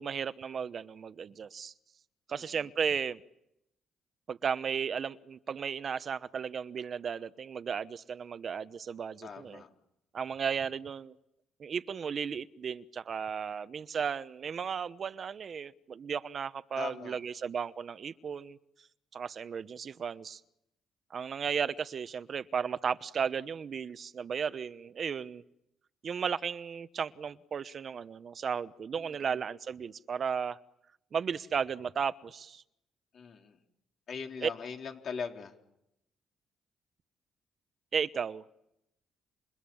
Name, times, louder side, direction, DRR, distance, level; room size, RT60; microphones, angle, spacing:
voice 1, 0.0-1.7 2.3-3.2 4.3-9.6 10.1-11.1 11.6-18.6 19.1-20.4 21.1-25.4 26.0-30.6 31.1-32.6 34.4-34.5 37.9-38.4, right 7 dB, 50° right, 14 dB, 1.1 m, -35 dB
voice 2, 9.2-9.7 16.8-17.2 28.9-29.1 33.1-33.6 34.1-35.5, left 6 dB, 60° left, 2 dB, 3.9 m, -40 dB
29.5 x 27.0 x 7.2 m, 0.83 s
cardioid pair, 90°, 0 cm